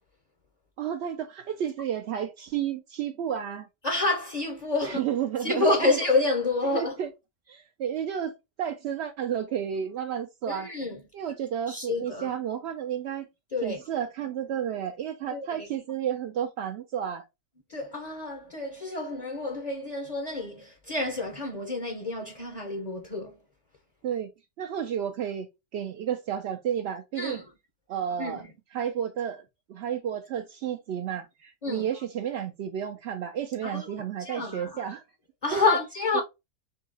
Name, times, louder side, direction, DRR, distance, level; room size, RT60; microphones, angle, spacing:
voice 1, 0.8-3.7 4.8-6.0 6.7-7.1 7.5-8.3 8.6-10.7 11.1-13.3 13.6-17.2 24.0-24.3 24.6-25.5 25.7-27.4 27.9-29.4 29.7-35.0 35.5-35.8 36.1-36.2, right 9 dB, 65° right, 0.6 m, -31 dB
voice 2, 3.8-5.0 5.4-7.0 10.5-11.0 11.7-12.3 13.5-13.8 15.3-15.7 17.7-23.4 27.2-27.5 28.2-28.5 31.6-31.9 33.6-33.9 34.2-34.8 35.4-36.2, left 3 dB, 40° left, 0.6 m, -28 dB
3.8 x 2.7 x 3.9 m
omnidirectional pair, 1.6 m